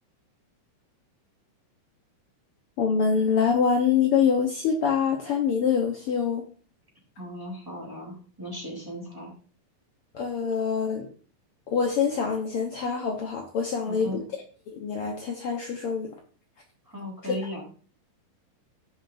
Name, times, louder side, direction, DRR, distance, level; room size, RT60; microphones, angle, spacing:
voice 1, 2.8-6.4 10.1-11.1 11.7-14.2 14.7-16.1 17.3-17.4, left 6 dB, 75° left, 1 dB, 1.3 m, -25 dB
voice 2, 7.2-9.3 13.8-14.2 16.9-17.6, equal, 5° right, -2 dB, 3.0 m, -37 dB
17.0 x 5.6 x 2.6 m, 0.40 s
omnidirectional pair, 3.9 m